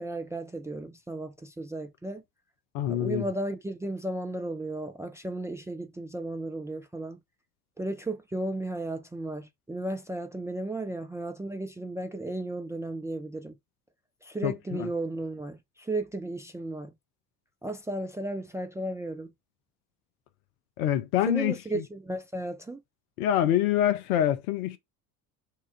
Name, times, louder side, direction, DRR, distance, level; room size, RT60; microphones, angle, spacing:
voice 1, 0.0-2.2 2.9-7.2 7.8-13.5 14.2-16.9 17.6-19.3 21.3-22.8, right 2 dB, 5° right, 0.4 m, -34 dB
voice 2, 2.7-3.3 14.4-14.9 20.8-21.8 23.2-24.8, left 11 dB, 60° left, 0.9 m, -26 dB
6.4 x 2.5 x 3.3 m
figure-of-eight pair, 60°, 48 cm